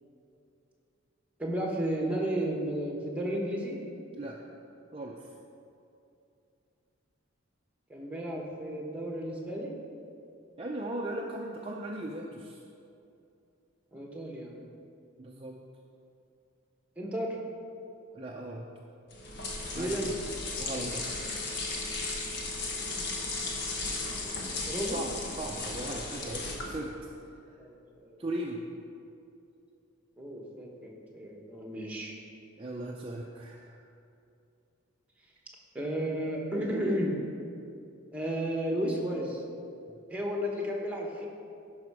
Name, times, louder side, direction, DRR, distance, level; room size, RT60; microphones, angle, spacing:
voice 1, 1.4-3.8 7.9-9.7 13.9-14.6 17.0-17.4 19.8-20.1 24.1-25.0 27.6-28.2 30.2-32.1 35.7-37.2 38.1-39.4 40.1-41.3, equal, 5° right, -1 dB, 1.1 m, -33 dB
voice 2, 4.9-5.3 10.6-12.6 15.2-15.6 18.1-18.7 19.7-20.2 20.6-21.0 24.9-27.0 27.5-27.6 28.2-28.6 32.6-33.8, right 1 dB, 25° right, -1 dB, 0.5 m, -38 dB
sound 1, 19.1-26.9, left 3 dB, 55° left, 1.2 m, -35 dB
11.0 x 5.5 x 4.8 m, 2.6 s
head